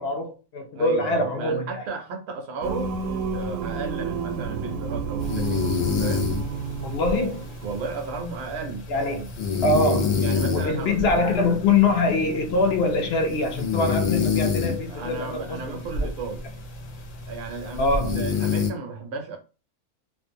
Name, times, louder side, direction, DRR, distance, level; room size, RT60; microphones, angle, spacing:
voice 1, 0.0-1.8 6.8-7.4 8.9-9.3 9.6-10.2 10.5-16.1 17.8-18.1, left 3 dB, 60° left, 0.8 m, -24 dB
voice 2, 0.7-2.9 3.3-6.3 7.6-9.3 10.2-11.3 14.9-16.4 17.3-19.4, right 4 dB, 65° right, 0.9 m, -34 dB
Singing, 2.6-8.1, right 5 dB, 90° right, 1.0 m, -31 dB
sound 1, 5.2-18.7, left 5 dB, 80° left, 1.0 m, -28 dB
2.5 x 2.1 x 2.6 m
omnidirectional pair, 1.3 m